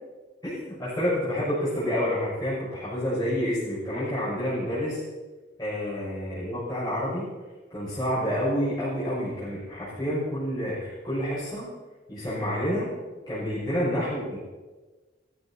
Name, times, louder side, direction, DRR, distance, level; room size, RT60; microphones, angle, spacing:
voice 1, 0.4-5.0 5.6-7.3 7.7-11.7 12.1-12.9 13.3-14.4, equal, 20° left, -10 dB, 5.9 m, -28 dB
16.5 x 14.0 x 4.3 m, 1.3 s
head